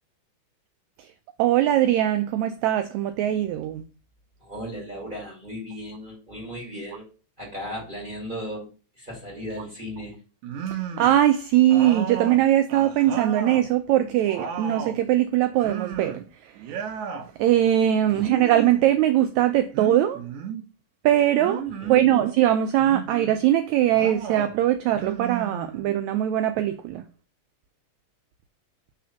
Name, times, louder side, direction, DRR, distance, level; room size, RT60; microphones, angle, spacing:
voice 1, 1.4-3.8 10.7-16.7 17.4-20.2 21.0-27.0, right 12 dB, 85° right, 1.6 m, -21 dB
voice 2, 4.4-7.1 7.4-8.7 9.0-10.2 18.1-18.3 21.8-22.2, equal, 15° right, 2.1 m, -36 dB
sound 1, 10.4-11.2 11.7-13.7 14.1-15.0 15.6-16.3 16.6-17.3 18.1-18.9 19.7-20.6 21.4-22.1 22.8-23.4 23.9-24.5 24.9-26.0, right 7 dB, 70° right, 2.1 m, -34 dB
4.8 x 4.1 x 5.7 m
omnidirectional pair, 3.8 m